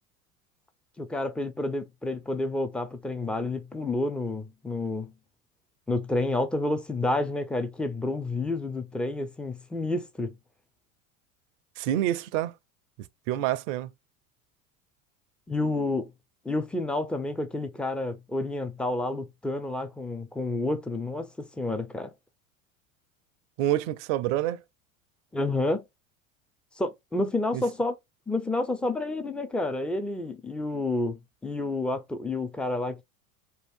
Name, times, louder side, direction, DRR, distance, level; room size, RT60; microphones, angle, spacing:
voice 1, 1.0-5.1 5.9-10.3 15.5-16.1 16.4-22.1 25.3-25.8 26.8-27.9 28.3-33.0, left 2 dB, 5° left, 0.3 m, -29 dB
voice 2, 11.8-12.5 13.3-13.9 23.6-24.6 27.5-27.6, right 13 dB, 60° right, 0.5 m, -27 dB
2.7 x 2.4 x 3.4 m
hypercardioid pair, 80°, 41 cm